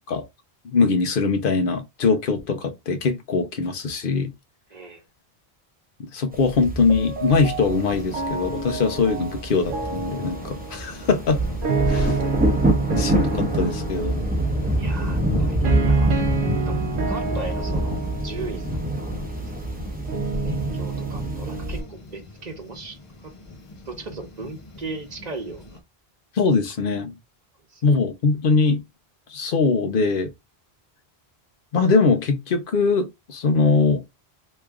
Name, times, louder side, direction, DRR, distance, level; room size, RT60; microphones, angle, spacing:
voice 1, 0.6-4.3 6.0-11.4 11.9-12.2 13.0-14.2 26.4-27.1 27.8-28.8 29.3-30.3 31.7-34.0, left 4 dB, 60° left, 0.9 m, -22 dB
voice 2, 4.7-5.0 14.7-16.1 16.7-18.8 20.4-23.3 23.8-25.8 27.7-27.8, right 3 dB, 40° right, 1.1 m, -37 dB
sound 1, 6.3-21.8, right 1 dB, 10° right, 0.7 m, -26 dB
sound 2, 6.9-21.9, right 4 dB, 60° right, 0.7 m, -30 dB
sound 3, 7.6-25.8, left 2 dB, 35° left, 0.7 m, -39 dB
3.1 x 2.4 x 3.4 m
omnidirectional pair, 1.1 m